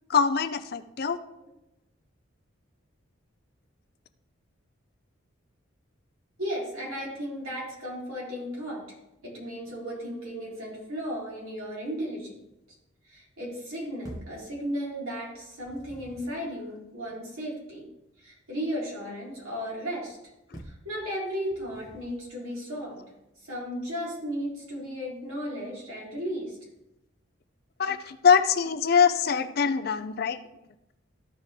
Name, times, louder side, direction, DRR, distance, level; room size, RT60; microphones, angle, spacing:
voice 1, 0.1-1.2 20.5-20.6 27.8-30.4, left 6 dB, 45° left, 10 dB, 0.4 m, -23 dB
voice 2, 6.4-8.8 9.2-12.4 13.0-17.8 18.2-20.2 20.6-23.1 23.4-26.6, equal, 85° right, -5 dB, 3.6 m, -35 dB
sound 1, 14.0-14.4 15.3-16.4 20.5-20.9 21.5-22.2, right 1 dB, 15° right, 1.1 m, -46 dB
13.5 x 4.9 x 3.5 m, 0.90 s
head